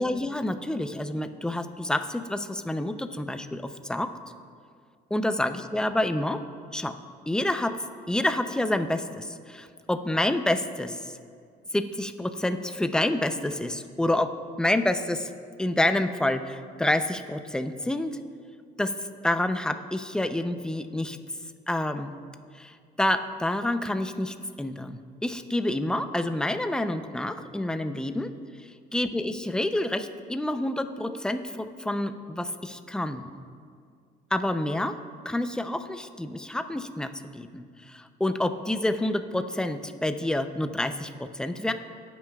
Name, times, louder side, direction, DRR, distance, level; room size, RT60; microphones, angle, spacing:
voice 1, 0.0-4.1 5.1-6.4 6.7-7.0 7.3-7.8 8.1-11.2 11.7-14.3 14.6-15.3 15.6-18.2 18.8-18.9 19.2-21.2 21.7-22.1 22.6-28.3 28.9-33.4 34.3-35.0 35.2-41.7, left 1 dB, 5° left, 8 dB, 0.5 m, -28 dB
20.0 x 9.0 x 2.3 m, 2.2 s
cardioid pair, 110°, 17 cm